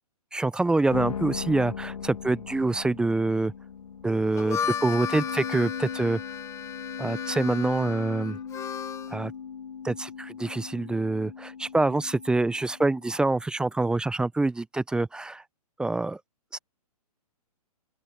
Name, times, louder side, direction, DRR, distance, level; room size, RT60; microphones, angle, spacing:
voice 1, 0.3-3.5 4.0-6.2 7.0-8.4 9.1-9.3 9.8-15.4 15.8-16.2 16.5-16.6, right 2 dB, 5° right, 0.6 m, -26 dB
sound 1, 0.9-13.2, left 7 dB, 75° left, 3.8 m, -38 dB
Harmonica, 4.2-9.2, left 8 dB, 15° left, 1.9 m, -35 dB
open air
hypercardioid pair, 130°, 20 cm